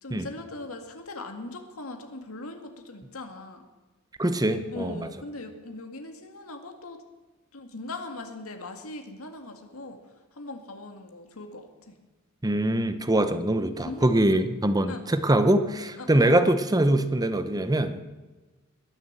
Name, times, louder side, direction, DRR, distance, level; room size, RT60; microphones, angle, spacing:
voice 1, 0.0-3.7 4.4-7.0 7.5-10.0 10.4-12.0 13.7-14.2 14.9-15.1 16.0-16.3, left 2 dB, 85° left, 5 dB, 2.0 m, -40 dB
voice 2, 4.2-5.1 12.4-18.0, right 1 dB, 20° right, 10 dB, 0.8 m, -23 dB
21.0 x 7.0 x 7.4 m, 1.2 s
head